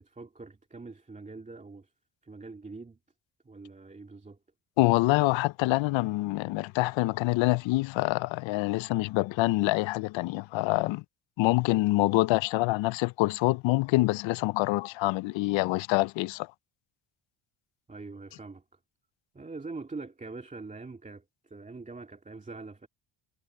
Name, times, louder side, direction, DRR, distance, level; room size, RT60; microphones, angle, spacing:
voice 1, 0.0-1.9 2.2-3.0 3.4-4.4 17.9-18.6 19.3-22.9, right 3 dB, 15° right, 2.6 m, -43 dB
voice 2, 4.8-11.0 11.4-16.5, left 20 dB, 70° left, 0.5 m, -26 dB
cardioid pair, 145°, 49 cm